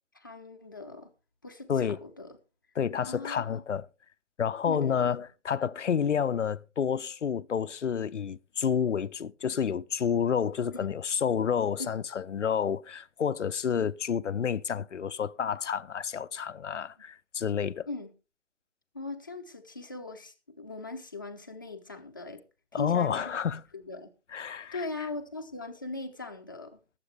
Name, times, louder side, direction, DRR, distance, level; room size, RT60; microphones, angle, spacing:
voice 1, 0.1-1.1 1.4-2.4 3.1-3.6 4.7-5.0 10.7-10.9 11.8-11.9 17.9-18.1 18.9-22.4 22.7-23.4 23.7-24.1 24.7-26.8, left 3 dB, 20° left, 0.7 m, -40 dB
voice 2, 2.8-3.9 4.4-17.9 22.7-23.6 24.3-24.9, left 7 dB, 85° left, 0.7 m, -29 dB
21.0 x 7.5 x 3.4 m
hypercardioid pair, 170°, 35 cm